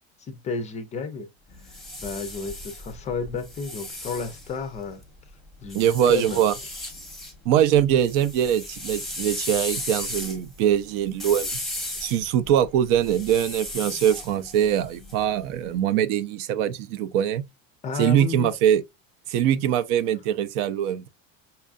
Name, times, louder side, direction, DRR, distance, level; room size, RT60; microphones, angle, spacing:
voice 1, 0.2-1.3 1.6-5.0 5.6-6.4 17.8-18.5, left 5 dB, 20° left, 0.4 m, -32 dB
sound 1, 1.5-5.0 5.7-7.3 7.7-15.6, left 1 dB, ahead, 0.8 m, -36 dB
voice 2, 5.7-6.5 7.4-11.5 12.0-17.4 18.0-18.8 19.3-21.1, right 10 dB, 60° right, 0.6 m, -22 dB
5.5 x 2.4 x 2.4 m
cardioid pair, 155°, 32 cm